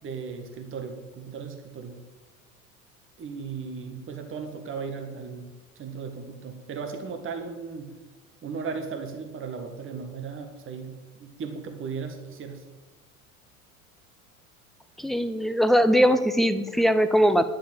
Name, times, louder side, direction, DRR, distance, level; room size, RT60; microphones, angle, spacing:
voice 1, 0.0-2.0 3.2-5.5 5.8-7.9 8.4-12.6, right 5 dB, 30° right, 5 dB, 1.7 m, -36 dB
voice 2, 15.0-17.5, equal, ahead, 11 dB, 0.6 m, -21 dB
10.5 x 7.5 x 7.5 m, 1.2 s
figure-of-eight pair, 75°, 43 cm